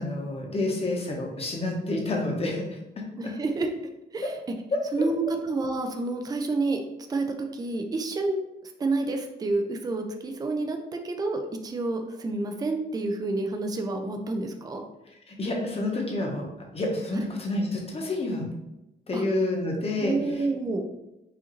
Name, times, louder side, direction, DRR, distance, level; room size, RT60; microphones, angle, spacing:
voice 1, 0.0-2.8 3.2-3.3 15.3-18.5 19.1-20.5, left 2 dB, 35° left, 0 dB, 0.9 m, -29 dB
voice 2, 3.2-3.7 4.1-4.3 4.9-6.8 7.1-7.2 7.5-8.4 8.8-10.8 11.0-14.8 17.1-17.3 19.1-19.2 20.0-20.8, right 3 dB, 20° right, 4 dB, 0.4 m, -29 dB
4.8 x 2.6 x 3.0 m, 0.92 s
wide cardioid pair, 150°, 18 cm